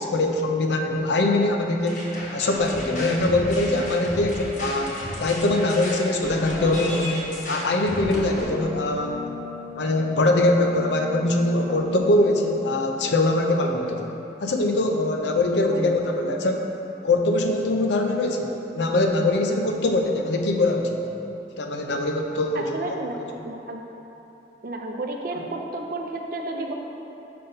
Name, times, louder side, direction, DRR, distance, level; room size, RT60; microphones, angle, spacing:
voice 1, 0.1-9.3 9.8-14.1 14.4-16.7 17.0-21.1 21.6-23.0, left 2 dB, 75° left, 3 dB, 0.6 m, -23 dB
sound 1, 1.9-8.4, left 1 dB, 45° left, 1.0 m, -33 dB
Brass instrument, 8.3-12.7, left 8 dB, 25° left, 0.3 m, -39 dB
voice 2, 22.5-23.8 24.6-26.7, right 2 dB, 50° right, 2 dB, 0.5 m, -32 dB
5.6 x 4.0 x 5.4 m, 2.9 s
head